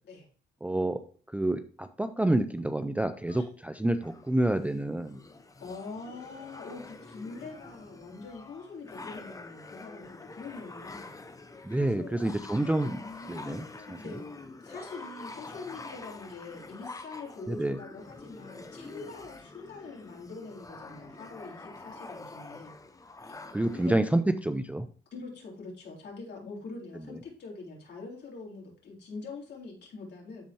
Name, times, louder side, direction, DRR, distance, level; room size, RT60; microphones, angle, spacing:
voice 1, 0.6-1.0 1.3-5.2 11.6-13.0 13.3-14.0 17.5-17.8 23.5-24.9, right 1 dB, 5° right, 9 dB, 0.4 m, -28 dB
sound 1, 4.0-23.9, left 3 dB, 15° left, 0.7 m, -46 dB
voice 2, 5.6-11.1 11.8-12.5 12.9-14.3 14.6-22.8 23.7-24.0 25.1-30.4, left 4 dB, 60° left, -2 dB, 3.6 m, -44 dB
12.5 x 4.3 x 2.8 m, 0.42 s
cardioid pair, 90°, 20 cm